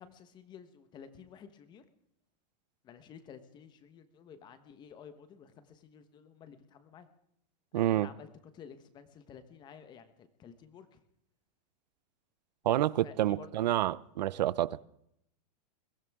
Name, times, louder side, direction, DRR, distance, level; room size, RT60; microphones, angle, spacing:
voice 1, 0.0-1.8 2.8-7.1 7.7-8.3 8.5-11.0 12.6-13.8, left 7 dB, 20° left, 1.1 m, -52 dB
voice 2, 7.7-8.1 12.6-14.8, right 13 dB, 85° right, 0.6 m, -28 dB
22.0 x 15.5 x 3.6 m
supercardioid pair, 160°, 21 cm